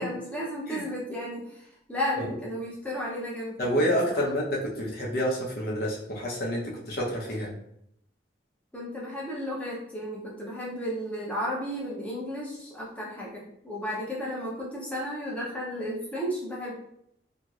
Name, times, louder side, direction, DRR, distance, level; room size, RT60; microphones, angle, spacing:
voice 1, 0.0-3.7 4.1-4.2 8.7-16.7, equal, 10° left, -5 dB, 0.7 m, -33 dB
voice 2, 3.6-7.5, equal, 55° left, -3 dB, 0.8 m, -28 dB
3.0 x 2.8 x 2.4 m, 0.73 s
head